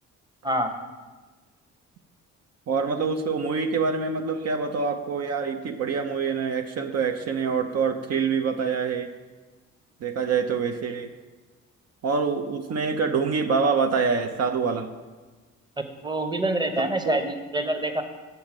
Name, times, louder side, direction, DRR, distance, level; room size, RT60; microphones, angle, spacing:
voice 1, 2.7-9.1 10.0-11.1 12.0-14.9 16.8-17.2, right 5 dB, 55° right, 5 dB, 0.7 m, -26 dB
voice 2, 16.0-18.0, right 1 dB, 15° right, 5 dB, 0.9 m, -26 dB
7.0 x 6.6 x 6.0 m, 1.3 s
cardioid pair, 90°, 30 cm